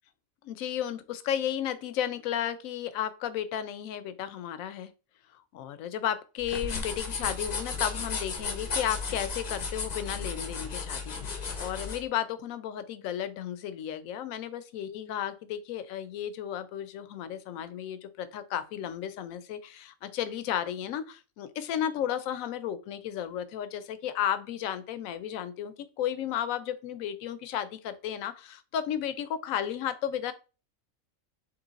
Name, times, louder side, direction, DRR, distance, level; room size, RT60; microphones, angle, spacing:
voice 1, 0.4-4.9 5.3-30.3, left 10 dB, 80° left, 12 dB, 1.0 m, -33 dB
sound 1, 6.4-12.0, left 4 dB, 40° left, 0.6 m, -34 dB
3.7 x 3.0 x 3.9 m, 0.32 s
omnidirectional pair, 1.4 m